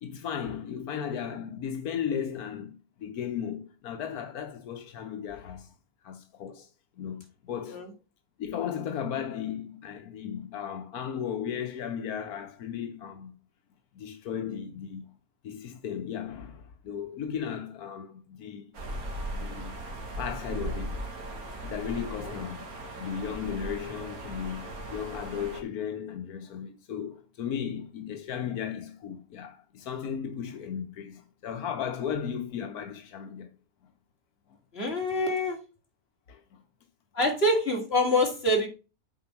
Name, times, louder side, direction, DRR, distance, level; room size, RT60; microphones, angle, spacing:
voice 1, 0.0-5.7 6.0-6.7 7.0-7.9 8.4-13.4 13.9-15.1 15.4-18.7 19.3-19.7 20.2-21.0 21.6-22.7 23.0-33.5 36.3-36.6, left 8 dB, 85° left, 1.4 m, -35 dB
sound 1, 18.7-25.6, right 1 dB, 80° right, 2.2 m, -38 dB
voice 2, 34.7-35.6 37.1-38.7, left 1 dB, 45° left, 2.7 m, -25 dB
7.9 x 4.7 x 5.9 m
omnidirectional pair, 1.5 m